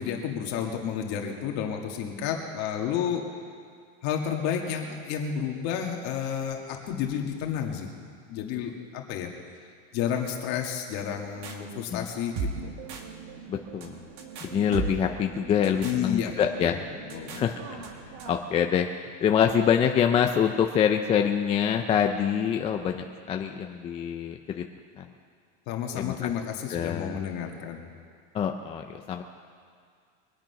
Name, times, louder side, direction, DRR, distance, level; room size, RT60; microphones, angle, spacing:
voice 1, 0.0-3.2 4.0-7.9 8.3-9.3 9.9-12.7 15.8-16.8 17.1-17.4 25.7-27.9, left 8 dB, 50° left, 1 dB, 2.1 m, -31 dB
sound 1, 11.0-18.4, right 4 dB, 50° right, 1.8 m, -38 dB
voice 2, 11.6-12.1 13.5-14.0 14.4-16.8 17.3-17.5 18.3-18.9 19.2-24.6 25.0-25.1 25.9-26.3 26.7-27.2 28.3-29.2, left 8 dB, 15° left, 4 dB, 0.4 m, -25 dB
23.0 x 8.9 x 5.8 m, 2.1 s
supercardioid pair, 160°, 35 cm